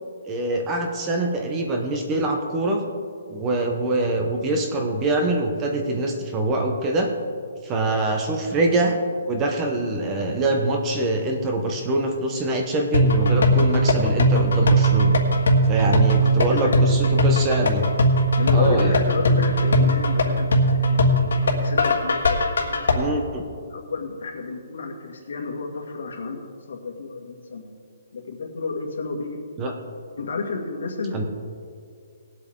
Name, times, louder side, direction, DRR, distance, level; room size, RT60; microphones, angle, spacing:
voice 1, 0.2-2.8 3.3-7.1 7.6-9.0 9.3-15.1 15.7-17.8 18.5-18.9 22.9-23.4 29.6-29.7 31.1-31.2, right 2 dB, 15° right, 3 dB, 0.8 m, -24 dB
sound 1, 12.9-22.9, equal, 90° left, 1.6 m, -19 dB
voice 2, 15.8-16.9 18.4-23.1 23.6-27.7 28.1-29.4 30.2-31.2, left 4 dB, 70° left, 1 dB, 2.1 m, -32 dB
19.0 x 8.1 x 3.8 m, 2.2 s
hypercardioid pair, 175°, 0 cm